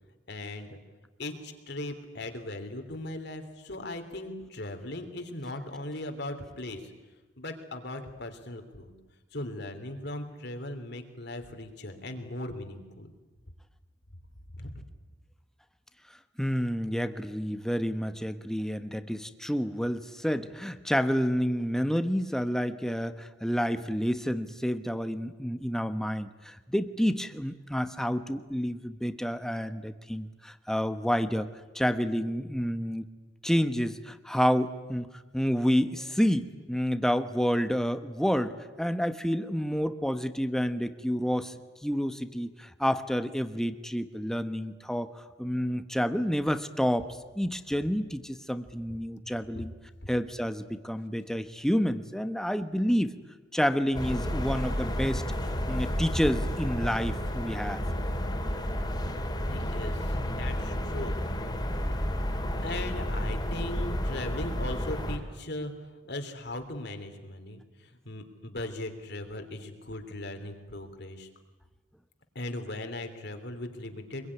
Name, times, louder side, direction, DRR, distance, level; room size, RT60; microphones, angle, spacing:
voice 1, 0.3-0.8 1.2-6.9 7.4-8.9 9.3-13.1 14.5-14.7 49.5-49.6 59.4-61.2 62.3-65.7 66.0-71.3 72.3-74.3, left 1 dB, 60° left, 6 dB, 3.3 m, -38 dB
voice 2, 16.4-33.1 33.4-35.1 35.3-41.5 41.8-47.1 47.3-49.7 50.1-53.1 53.5-55.2 55.7-57.8, equal, 5° left, 10 dB, 1.2 m, -29 dB
sound 1, 53.9-65.2, equal, 20° left, 3.0 m, -31 dB
25.0 x 22.5 x 9.9 m, 1.2 s
head